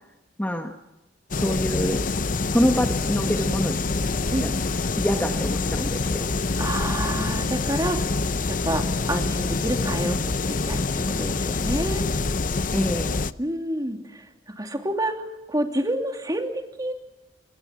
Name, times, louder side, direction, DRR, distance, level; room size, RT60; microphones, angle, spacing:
voice 1, 0.4-0.7 1.4-2.0 2.4-3.8 4.4-4.5 5.0-6.3 12.7-13.1, equal, 10° left, 4 dB, 1.6 m, -25 dB
sound 1, 1.3-13.3, left 3 dB, 45° left, 0.7 m, -26 dB
voice 2, 6.6-8.2 8.5-12.0 13.4-15.1 15.5-16.9, right 1 dB, 20° right, 4 dB, 3.0 m, -29 dB
28.0 x 22.5 x 6.0 m, 0.99 s
head